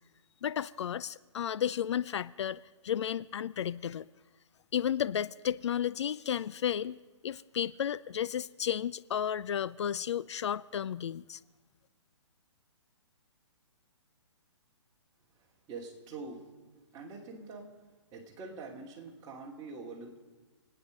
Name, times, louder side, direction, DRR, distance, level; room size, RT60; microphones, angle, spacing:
voice 1, 0.4-4.1 4.7-7.0 7.2-11.4, left 9 dB, 65° left, 17 dB, 0.4 m, -33 dB
voice 2, 15.3-16.5 16.9-17.7 18.1-20.2, right 3 dB, 25° right, -1 dB, 2.6 m, -45 dB
27.5 x 9.8 x 5.2 m, 1.3 s
hypercardioid pair, 140°, 16 cm